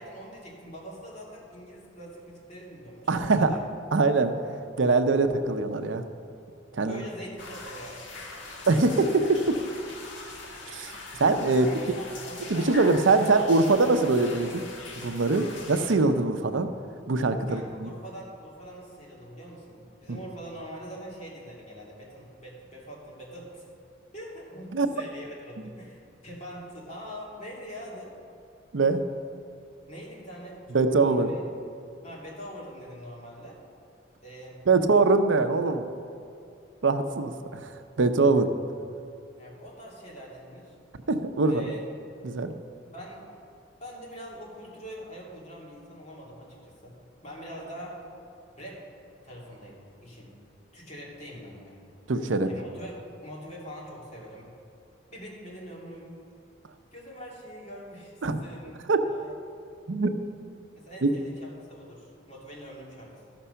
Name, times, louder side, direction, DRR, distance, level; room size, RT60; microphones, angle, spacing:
voice 1, 0.0-3.6 6.8-8.2 11.5-13.6 17.5-23.6 24.1-28.2 29.9-31.4 32.0-33.6 34.2-34.6 39.3-40.7 41.4-41.8 42.9-43.3 43.8-46.9 47.2-48.0 48.6-48.8 49.2-50.4 50.7-51.9 52.4-52.9 53.2-54.5 55.1-56.1 56.9-58.1 58.4-58.8 59.1-59.3 60.8-63.4, equal, 40° left, -4 dB, 2.7 m, -43 dB
voice 2, 3.1-3.5 3.9-6.0 6.7-7.0 8.7-9.5 10.7-10.9 11.2-11.7 12.5-14.6 15.0-16.7 17.1-17.9 24.7-24.9 28.7-29.0 30.7-31.3 34.7-35.9 36.8-38.5 41.1-41.7 42.2-42.5 52.1-52.5 58.2-58.4 58.9-59.0 59.9-60.1 61.0-61.1, right 3 dB, 85° right, 8 dB, 0.6 m, -23 dB
sound 1, 7.4-15.9, left 3 dB, 85° left, 1.6 m, -42 dB
13.5 x 6.0 x 5.6 m, 2.5 s
head